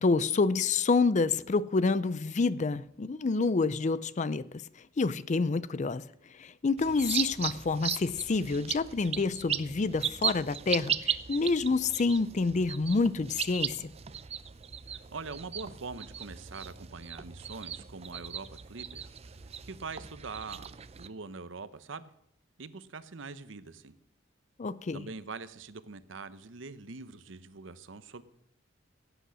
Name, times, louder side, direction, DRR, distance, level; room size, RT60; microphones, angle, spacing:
voice 1, 0.0-4.5 5.0-6.0 6.4-13.9 24.6-25.1, left 4 dB, 35° left, 0.4 m, -28 dB
sound 1, 6.8-21.1, right 8 dB, 30° right, 0.5 m, -37 dB
voice 2, 14.9-19.1 19.6-22.1 22.6-23.9 24.9-28.2, right 4 dB, 70° right, 0.8 m, -43 dB
16.0 x 8.1 x 6.2 m
head